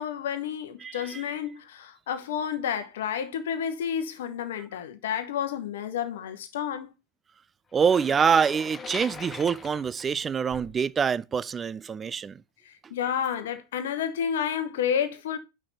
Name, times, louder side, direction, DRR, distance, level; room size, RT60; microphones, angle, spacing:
voice 1, 0.0-6.9 12.6-15.4, left 8 dB, 60° left, 1.0 m, -30 dB
voice 2, 0.8-1.2 7.7-12.4, right 6 dB, 20° right, 0.3 m, -25 dB
sound 1, 7.8-10.8, left 5 dB, 15° left, 0.8 m, -41 dB
6.0 x 4.7 x 5.7 m
figure-of-eight pair, 90°, 0 cm